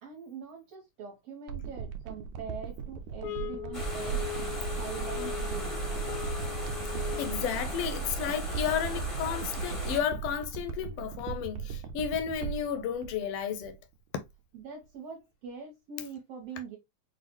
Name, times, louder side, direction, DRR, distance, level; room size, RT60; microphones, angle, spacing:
voice 1, 0.0-4.2 4.7-5.8 14.5-16.8, right 6 dB, 65° right, 2.1 m, -43 dB
sound 1, 1.5-13.9 14.2-14.3, right 7 dB, 85° right, 2.0 m, -39 dB
sound 2, 3.2-7.6, left 13 dB, 85° left, 2.0 m, -39 dB
sound 3, 3.7-10.0, right 1 dB, 25° left, 0.6 m, -36 dB
voice 2, 7.2-13.8, left 8 dB, 70° left, 1.5 m, -32 dB
6.0 x 2.4 x 2.9 m
omnidirectional pair, 3.4 m